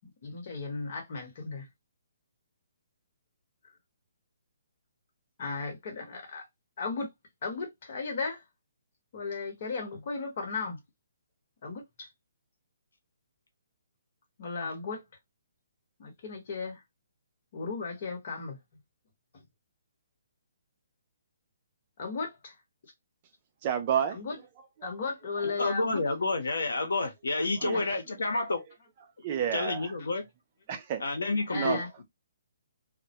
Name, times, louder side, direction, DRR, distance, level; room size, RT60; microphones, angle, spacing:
voice 1, 0.2-1.7 5.4-6.4 6.8-7.1 7.4-8.4 9.1-10.8 11.6-12.1 14.4-15.0 16.0-16.8 17.5-18.6 22.0-22.5 24.1-24.4 24.8-26.0 27.7-27.8 31.5-31.9, left 4 dB, 50° left, 1.0 m, -35 dB
voice 2, 23.6-24.2 24.8-24.9 27.6-27.9 29.2-29.9 30.7-31.0 31.5-31.8, right 8 dB, 35° right, 0.4 m, -30 dB
voice 3, 25.4-28.6 29.5-30.3 31.0-32.0, left 3 dB, 85° left, 0.8 m, -30 dB
2.1 x 2.1 x 2.7 m
hypercardioid pair, 155°, 0 cm